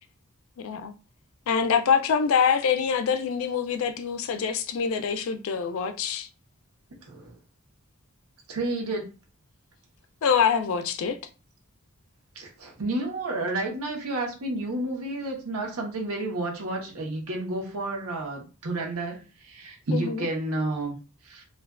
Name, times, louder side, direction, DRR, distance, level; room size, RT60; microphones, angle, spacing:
voice 1, 0.6-0.9 1.5-6.3 10.2-11.2 19.9-20.3, left 6 dB, 65° left, 0.3 m, -25 dB
voice 2, 7.1-7.4 8.5-9.1 12.3-21.0 21.2-21.4, right 2 dB, 90° right, 0.8 m, -31 dB
2.3 x 2.3 x 2.2 m
head